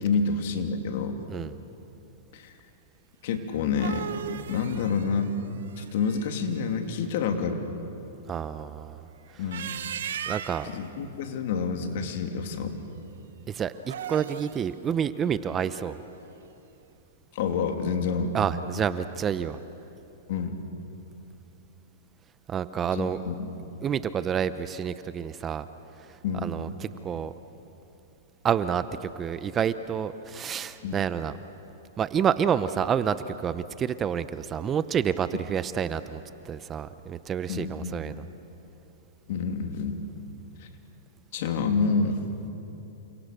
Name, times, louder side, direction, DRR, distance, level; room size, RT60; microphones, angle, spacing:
voice 1, 0.0-1.2 2.3-2.5 3.2-4.1 4.5-5.3 5.8-7.6 9.4-9.8 10.6-12.7 17.3-18.4 20.3-20.6 22.9-23.5 26.2-26.5 30.8-31.0 37.5-37.9 39.3-40.0 41.3-42.3, left 5 dB, 60° left, 5 dB, 2.9 m, -28 dB
sound 1, 3.5-6.6 9.3-10.8 13.8-14.7, right 9 dB, 80° right, 1.3 m, -37 dB
voice 2, 8.3-9.0 10.3-10.7 13.5-16.0 18.3-19.6 22.5-23.2 23.8-25.6 26.4-27.3 28.4-31.3 32.0-38.2, right 8 dB, 20° right, 13 dB, 0.7 m, -29 dB
29.5 x 28.0 x 6.8 m, 2.9 s
hypercardioid pair, 140°, 0 cm